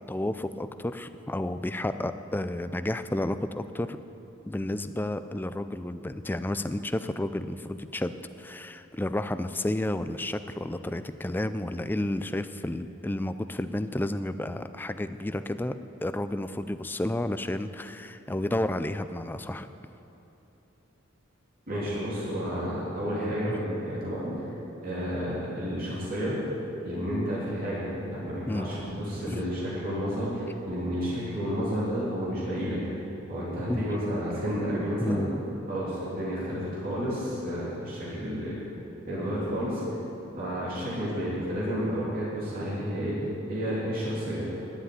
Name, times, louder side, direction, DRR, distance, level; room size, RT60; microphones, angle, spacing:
voice 1, 0.1-4.0 4.4-15.7 16.0-19.7 23.5-23.6 28.5-28.7 29.3-29.4 33.7-33.9 35.0-35.3, left 1 dB, 10° left, 11 dB, 0.3 m, -31 dB
voice 2, 21.7-24.5 24.8-26.4 26.8-32.8 33.3-35.2 35.7-38.6 39.1-39.8 40.4-43.2 43.5-44.4, equal, 45° right, -8 dB, 3.2 m, -31 dB
11.0 x 7.5 x 9.7 m, 3.0 s
head